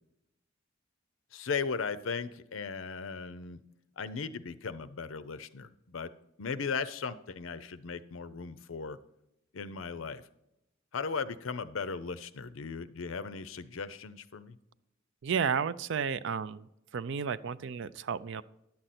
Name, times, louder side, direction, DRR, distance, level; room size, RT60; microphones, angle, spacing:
voice 1, 1.3-3.6 4.0-6.1 6.4-9.0 9.5-10.2 10.9-14.6, left 5 dB, 75° left, 14 dB, 0.6 m, -37 dB
voice 2, 15.2-16.7 16.9-18.4, right 6 dB, 65° right, 16 dB, 0.4 m, -32 dB
10.5 x 7.7 x 4.2 m, 0.87 s
head